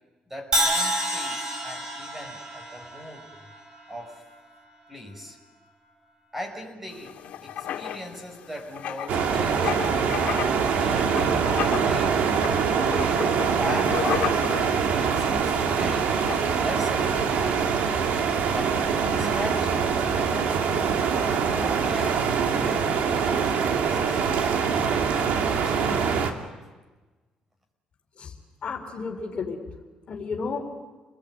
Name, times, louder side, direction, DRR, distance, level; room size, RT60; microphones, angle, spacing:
voice 1, 0.3-3.3 3.9-4.2 4.9-5.4 6.3-10.2 10.6-12.3 13.6-16.1 16.6-17.7 18.5-20.8 21.4-24.2 24.8-25.8, equal, 10° right, 4 dB, 6.1 m, -40 dB
Crash cymbal, 0.5-4.6, right 1 dB, 30° right, 6.1 m, -29 dB
Writing, 6.9-17.3, left 10 dB, 75° left, 2.0 m, -35 dB
sound 1, 9.1-26.3, right 6 dB, 75° right, 2.6 m, -24 dB
voice 2, 28.6-29.6 30.1-30.8, left 4 dB, 50° left, 2 dB, 4.3 m, -32 dB
30.0 x 20.5 x 9.4 m, 1.3 s
cardioid pair, 110°, 3 cm